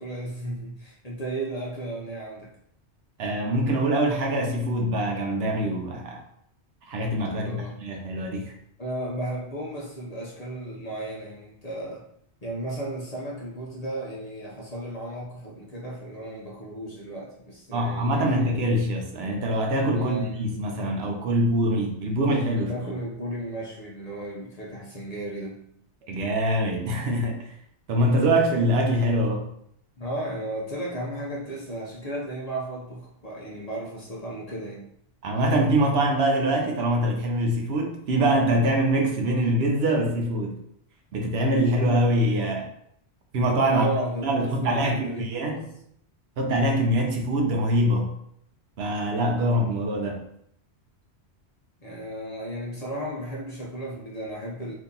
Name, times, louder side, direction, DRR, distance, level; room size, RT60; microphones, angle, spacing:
voice 1, 0.0-2.5 7.3-7.8 8.8-12.0 12.4-18.6 19.9-20.4 22.6-25.6 30.0-34.8 43.7-45.6 51.8-54.7, right 1 dB, 45° left, -4 dB, 0.7 m, -34 dB
voice 2, 3.2-6.2 6.9-8.5 17.7-22.7 26.1-27.4 27.9-29.4 35.2-40.6 41.1-42.7 43.3-43.9 44.2-45.6 46.4-48.1 48.8-50.2, right 1 dB, 70° right, 1 dB, 0.9 m, -24 dB
2.8 x 2.7 x 3.7 m, 0.70 s
omnidirectional pair, 1.1 m